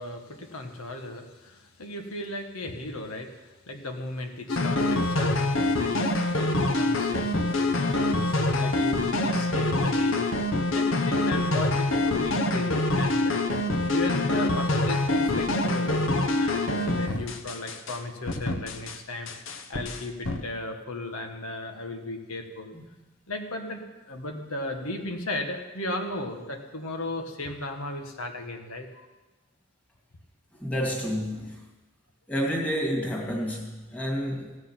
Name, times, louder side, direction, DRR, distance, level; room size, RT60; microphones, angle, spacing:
voice 1, 0.0-10.5 10.7-13.4 13.8-16.0 16.4-22.8 23.3-29.1, left 2 dB, 85° left, 4 dB, 1.5 m, -36 dB
sound 1, 4.5-18.0 18.3-19.0 19.3-20.4, left 2 dB, 65° left, 1.0 m, -25 dB
voice 2, 30.6-31.6 32.3-34.6, equal, 5° left, -2 dB, 2.2 m, -29 dB
16.0 x 6.6 x 8.9 m, 1.1 s
head